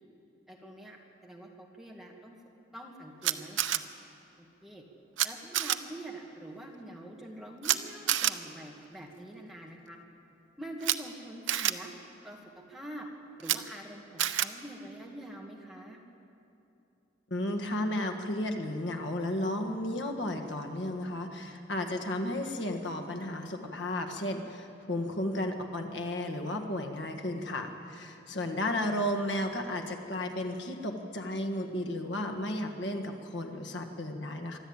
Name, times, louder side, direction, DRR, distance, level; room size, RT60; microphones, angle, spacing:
voice 1, 0.5-1.0 1.2-2.4 2.7-3.8 4.4-4.8 5.2-10.0 10.6-11.9 12.2-13.1 13.4-16.0, right 1 dB, ahead, -1 dB, 1.9 m, -45 dB
Camera, 3.2-3.8 5.2-5.3 5.5-5.8 7.6-7.8 8.1-8.3 10.8-10.9 11.5-11.7 13.4-13.6 14.2-14.5, right 12 dB, 85° right, 0.7 m, -27 dB
voice 2, 17.3-34.6, left 1 dB, 75° left, 4 dB, 1.6 m, -33 dB
24.0 x 12.5 x 8.8 m, 2.9 s
head